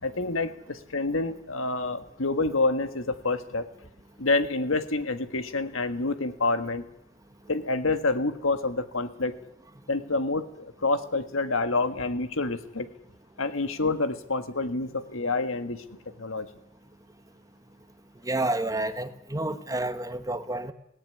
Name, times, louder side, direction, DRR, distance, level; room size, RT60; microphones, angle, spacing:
voice 1, 0.0-3.7 4.2-6.8 7.5-9.4 9.9-12.9 13.4-15.8 16.2-16.5, left 3 dB, 75° left, 10 dB, 1.6 m, -28 dB
voice 2, 18.2-20.7, right 2 dB, 15° right, 10 dB, 1.1 m, -29 dB
18.0 x 17.5 x 9.5 m, 0.77 s
head